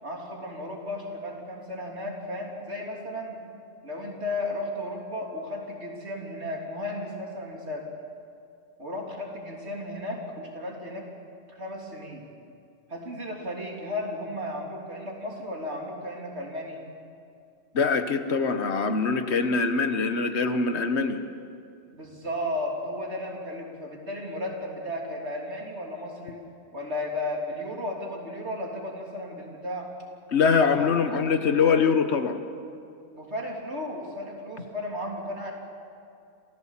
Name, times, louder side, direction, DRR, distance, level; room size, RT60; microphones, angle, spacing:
voice 1, 0.0-3.4 3.8-7.9 8.8-11.1 11.5-12.3 12.9-16.8 21.9-26.4 26.7-29.9 30.7-30.9 33.1-35.5, left 1 dB, 75° right, -1 dB, 3.6 m, -34 dB
voice 2, 17.7-21.2 30.3-32.4, left 5 dB, 75° left, 9 dB, 1.4 m, -23 dB
27.0 x 16.0 x 7.4 m, 2.4 s
omnidirectional pair, 1.1 m